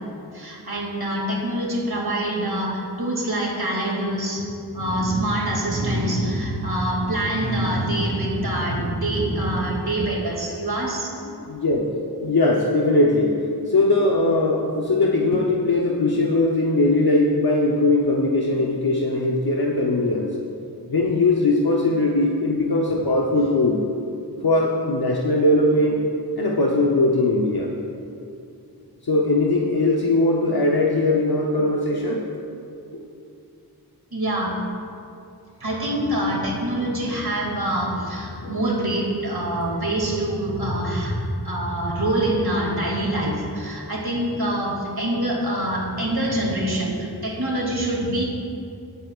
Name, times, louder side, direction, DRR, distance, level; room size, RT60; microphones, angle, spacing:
voice 1, 0.3-4.4 4.7-11.1 34.1-34.5 35.6-48.2, right 1 dB, 65° right, -3 dB, 2.4 m, -25 dB
voice 2, 11.3-11.9 12.2-20.3 20.9-23.8 24.4-26.0 26.4-27.7 29.0-32.2 38.4-38.6, left 2 dB, 65° left, -2 dB, 0.9 m, -20 dB
17.5 x 8.2 x 2.5 m, 2.6 s
wide cardioid pair, 45°, 40 cm